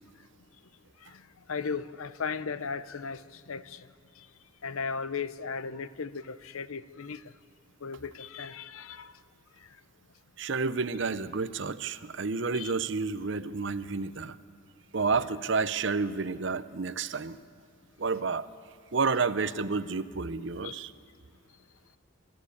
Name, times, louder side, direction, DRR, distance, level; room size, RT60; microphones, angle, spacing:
voice 1, 1.5-3.2 3.5-3.9 4.6-7.2 7.8-9.1 12.5-12.7 20.6-20.8, left 5 dB, 85° left, 15 dB, 0.7 m, -36 dB
voice 2, 10.4-14.4 14.9-17.4 18.0-18.5 18.9-20.9, right 4 dB, 60° right, 14 dB, 0.7 m, -30 dB
28.0 x 14.0 x 8.5 m, 2.3 s
head